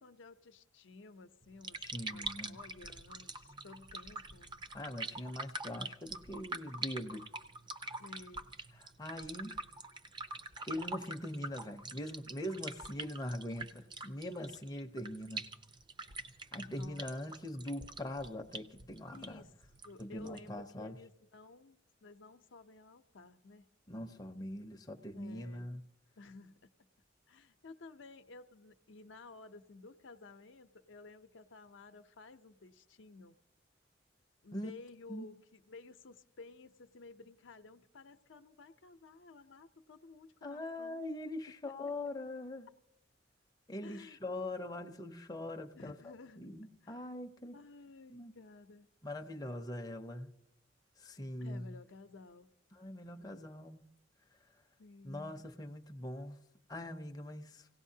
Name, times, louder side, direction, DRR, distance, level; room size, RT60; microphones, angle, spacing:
voice 1, 0.0-4.6 8.0-8.5 16.6-17.0 19.1-19.5 19.8-23.7 25.1-25.7 26.2-26.7 27.3-33.4 34.4-41.0 41.5-41.6 43.8-44.2 45.7-46.5 46.8-47.1 47.5-48.9 51.4-52.5 54.8-55.4, left 3 dB, 75° left, 8 dB, 0.6 m, -54 dB
sound 1, 1.4-20.6, right 3 dB, 25° right, 0.5 m, -45 dB
voice 2, 1.8-2.6 4.7-7.3 9.0-9.6 10.7-15.4 16.5-19.4 20.0-21.0 23.9-25.8 34.5-34.7 35.1-35.3 40.4-42.7 43.7-47.6 48.1-48.3 49.0-50.3 51.0-51.7 52.7-53.8 55.0-56.4 56.7-57.7, left 1 dB, 20° left, 4 dB, 0.6 m, -42 dB
26.0 x 17.0 x 2.7 m, 0.82 s
head